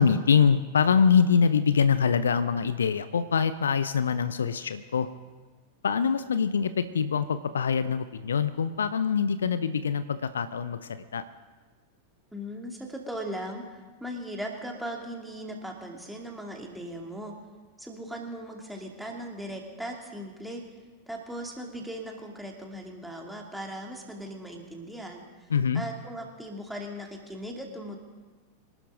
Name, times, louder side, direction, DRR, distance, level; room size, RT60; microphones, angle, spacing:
voice 1, 0.0-5.1 5.8-11.2 25.5-25.8, left 6 dB, 70° left, 13 dB, 0.6 m, -24 dB
voice 2, 12.3-17.4 17.8-20.6 21.1-25.5 25.7-28.0, equal, 5° right, 0 dB, 2.8 m, -38 dB
24.5 x 12.5 x 3.9 m, 1.3 s
figure-of-eight pair, 90°, 0 cm